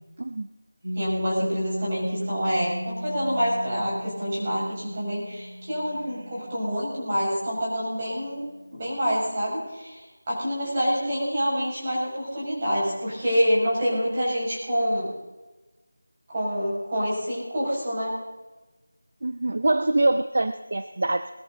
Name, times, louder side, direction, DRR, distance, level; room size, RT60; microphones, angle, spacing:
Piano, 0.8-8.1, equal, 85° right, 1.8 m, -36 dB
voice 1, 0.9-8.5 8.7-15.1 16.3-18.2, equal, 25° right, -6 dB, 6.5 m, -27 dB
voice 2, 19.2-21.3, right 2 dB, 50° right, 10 dB, 0.7 m, -24 dB
20.5 x 13.5 x 4.0 m, 1.1 s
figure-of-eight pair, 175°, 0 cm